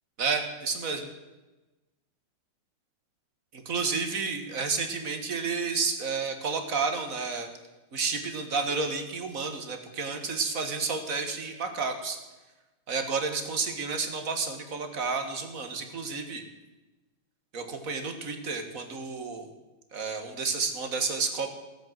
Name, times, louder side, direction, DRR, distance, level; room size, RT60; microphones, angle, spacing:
voice 1, 0.2-1.1 3.5-7.5 7.9-12.2 12.9-16.4 17.5-19.5 19.9-21.5, right 4 dB, 40° right, 6 dB, 1.8 m, -31 dB
16.5 x 8.4 x 7.6 m, 1.1 s
omnidirectional pair, 2.4 m